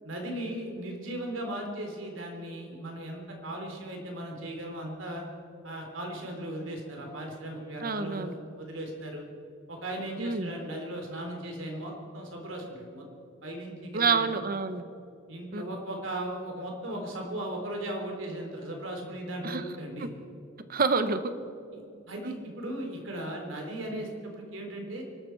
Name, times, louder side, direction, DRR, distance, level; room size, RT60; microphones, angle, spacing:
voice 1, 0.0-5.2 5.6-9.2 9.7-13.0 13.4-14.3 15.3-20.1 21.7-21.8 22.1-25.0, right 1 dB, 70° right, 2 dB, 3.6 m, -37 dB
voice 2, 7.8-8.3 10.2-10.5 13.9-14.8 15.5-15.6 19.4-19.6 20.0-20.1 20.7-21.2 22.2-22.3, right 4 dB, 45° right, 11 dB, 1.0 m, -27 dB
24.5 x 12.5 x 4.7 m, 2.6 s
head